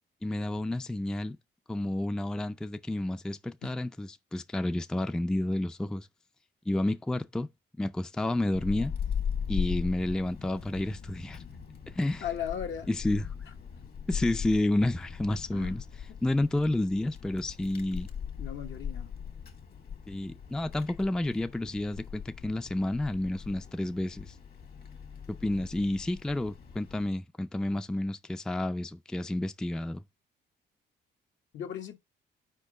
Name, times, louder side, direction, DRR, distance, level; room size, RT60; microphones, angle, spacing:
voice 1, 0.2-1.4 1.7-6.1 6.7-7.5 7.8-8.9 9.5-11.4 11.9-12.2 12.9-13.3 14.1-15.8 16.2-18.1 20.1-24.3 25.4-30.0, left 1 dB, 5° left, 0.4 m, -30 dB
Wind, 8.5-27.1, left 7 dB, 50° left, 1.4 m, -39 dB
voice 2, 12.2-12.9 15.5-15.8 16.1-16.2 18.4-19.1 31.5-32.0, left 9 dB, 70° left, 1.2 m, -37 dB
4.7 x 4.5 x 5.9 m
cardioid pair, 90°, 20 cm